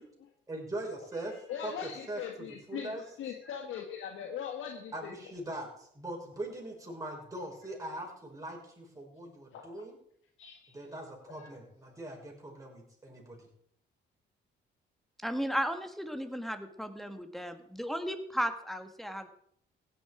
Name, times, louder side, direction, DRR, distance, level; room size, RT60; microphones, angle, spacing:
voice 1, 0.5-3.0 4.9-10.0 10.7-13.5, right 1 dB, 15° right, -1 dB, 6.0 m, -41 dB
voice 2, 1.5-2.9 3.2-5.1 9.5-9.8 10.4-10.8 11.3-11.5, left 8 dB, 80° left, 3 dB, 1.7 m, -40 dB
voice 3, 15.2-19.3, equal, ahead, 8 dB, 1.7 m, -35 dB
16.0 x 10.5 x 5.0 m, 0.68 s
cardioid pair, 90°, 20 cm